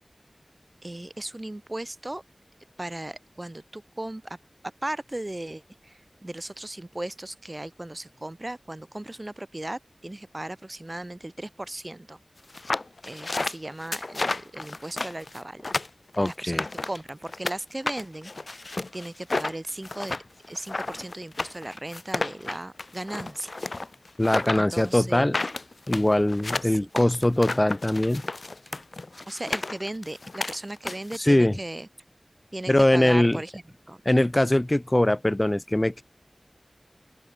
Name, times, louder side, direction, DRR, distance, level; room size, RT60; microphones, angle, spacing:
voice 1, 0.8-2.2 2.8-4.4 4.8-12.2 13.0-15.7 16.2-20.2 20.5-23.6 24.5-25.4 26.6-26.9 29.3-31.9 32.5-33.5 33.9-34.0, right 1 dB, 35° right, 1.0 m, -37 dB
sound 1, 12.5-17.6 17.9-31.2, left 2 dB, 70° left, 1.5 m, -32 dB
voice 2, 16.2-16.6 24.2-25.3 25.9-28.2 31.2-31.6 32.7-33.4 34.0-36.0, left 1 dB, 25° left, 1.2 m, -22 dB
open air
wide cardioid pair, 55°, 0 cm